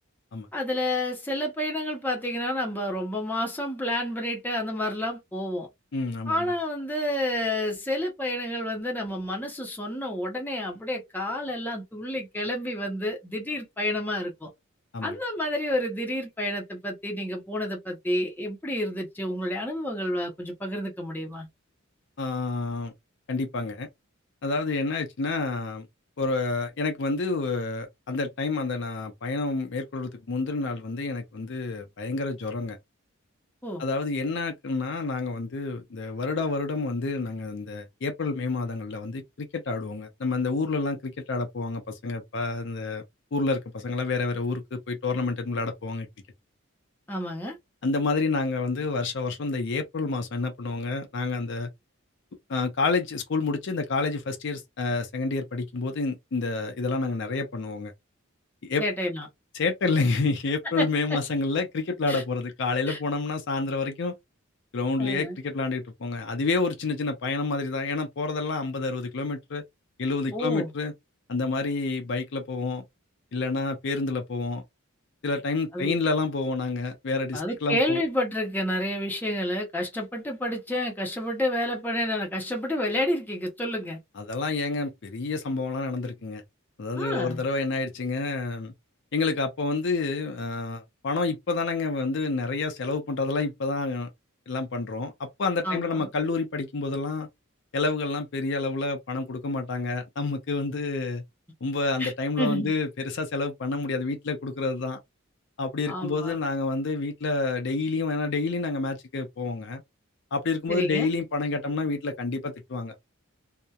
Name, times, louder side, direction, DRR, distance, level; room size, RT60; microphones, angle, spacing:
voice 1, 0.5-5.7 6.3-14.5 15.0-21.5 33.6-33.8 47.1-47.6 58.8-59.3 60.8-60.9 62.1-62.2 62.9-63.0 65.0-65.4 70.3-70.7 75.7-76.0 77.3-84.0 86.9-87.4 95.6-96.1 102.0-102.1 102.4-102.7 105.9-106.3 110.7-111.1, left 1 dB, 10° left, 0.6 m, -29 dB
voice 2, 5.9-6.5 14.9-15.2 22.2-22.9 23.3-23.9 24.4-25.9 26.2-32.8 33.8-43.0 43.3-46.1 47.8-51.7 52.5-57.9 58.6-58.8 59.5-64.1 64.7-69.6 70.0-70.9 71.3-72.8 73.3-74.6 75.2-78.0 84.2-86.4 86.8-88.7 89.1-94.1 94.5-97.3 97.7-101.2 101.6-105.0 105.6-109.8 110.3-112.9, left 3 dB, 55° left, 0.5 m, -29 dB
2.7 x 2.1 x 2.3 m
head